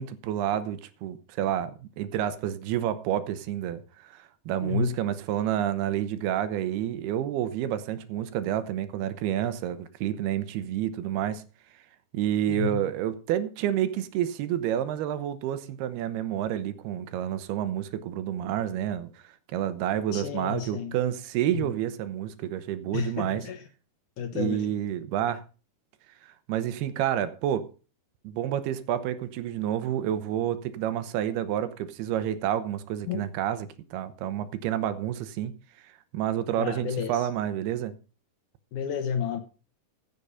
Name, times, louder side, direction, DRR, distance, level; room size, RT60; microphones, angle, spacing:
voice 1, 0.0-11.4 12.1-19.1 19.5-23.5 24.3-25.4 26.5-27.7 28.2-35.5 36.1-37.9, right 11 dB, 75° right, 2.8 m, -29 dB
voice 2, 4.6-5.0 12.5-12.8 20.1-20.9 21.5-21.7 22.9-23.6 24.2-24.7 33.1-33.2 36.6-37.3 38.7-39.4, left 8 dB, 70° left, 2.0 m, -31 dB
15.5 x 6.8 x 5.5 m
omnidirectional pair, 4.7 m